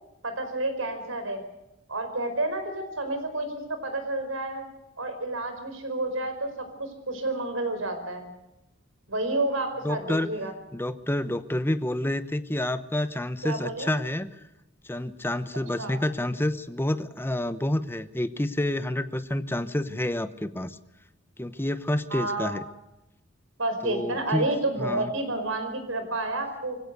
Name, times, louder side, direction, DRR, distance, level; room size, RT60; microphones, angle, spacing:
voice 1, 0.2-1.4 1.9-4.7 5.0-8.2 9.1-10.5 13.4-13.9 15.8-16.0 22.1-22.6 23.6-26.8, right 2 dB, 85° right, 8 dB, 5.0 m, -30 dB
voice 2, 9.8-10.3 10.7-14.3 14.8-20.8 21.4-22.6 23.8-24.5 24.8-25.1, left 1 dB, 10° left, 12 dB, 0.9 m, -28 dB
24.0 x 16.5 x 6.8 m, 0.90 s
head